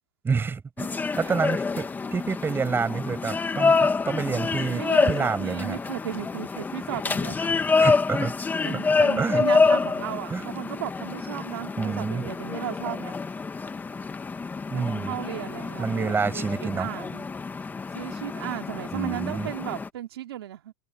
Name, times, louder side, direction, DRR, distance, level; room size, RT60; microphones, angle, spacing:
voice 1, 0.2-0.9 1.2-5.8 7.8-8.4 8.7-8.8 9.2-9.4 10.3-10.4 11.8-12.3 14.7-15.1 15.8-16.9 18.9-19.5, right 5 dB, 15° right, 5.8 m, -28 dB
sound 1, 0.8-19.9, left 4 dB, 15° left, 1.4 m, -27 dB
voice 2, 4.7-7.4 8.6-13.1 14.7-17.3 17.9-20.7, right 13 dB, 80° right, 2.6 m, -35 dB
hypercardioid pair, 120°, 13 cm